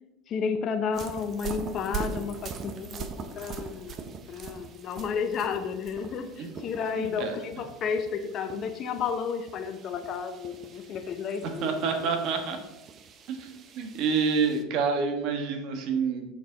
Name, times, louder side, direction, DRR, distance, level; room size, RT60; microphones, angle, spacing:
voice 1, 0.3-11.7, left 6 dB, 40° left, 7 dB, 0.7 m, -32 dB
sound 1, 0.9-14.6, right 6 dB, 40° right, 0.8 m, -42 dB
voice 2, 7.0-7.4 11.6-12.6 13.3-16.3, right 5 dB, 55° right, 5 dB, 1.4 m, -28 dB
7.0 x 6.2 x 3.9 m, 0.98 s
supercardioid pair, 115°, 0 cm